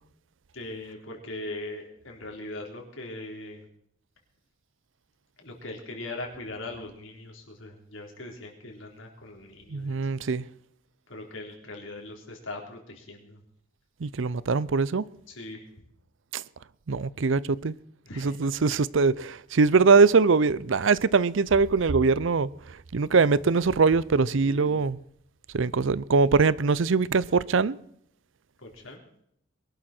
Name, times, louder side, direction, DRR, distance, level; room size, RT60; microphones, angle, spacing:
voice 1, 0.5-3.7 5.4-10.2 11.1-13.4 15.3-15.7 18.1-18.4 24.4-24.8 28.6-29.0, left 2 dB, 80° left, 3.8 m, -40 dB
voice 2, 9.7-10.4 14.0-15.0 16.3-16.4 16.9-17.8 18.2-25.0 25.5-27.8, right 4 dB, 75° right, 0.6 m, -22 dB
22.0 x 12.0 x 4.4 m
head